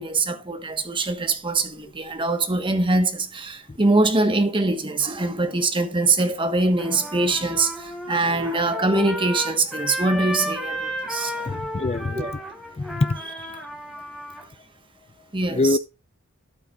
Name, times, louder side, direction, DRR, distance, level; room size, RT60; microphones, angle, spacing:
voice 1, 0.0-11.7 12.1-12.3 15.3-15.8, right 2 dB, 25° right, 1.2 m, -23 dB
Trumpet, 6.8-14.4, equal, ahead, 4.1 m, -33 dB
voice 2, 11.4-12.4 12.8-13.3 15.5-15.8, left 2 dB, 30° left, 0.4 m, -24 dB
13.0 x 8.4 x 2.4 m
head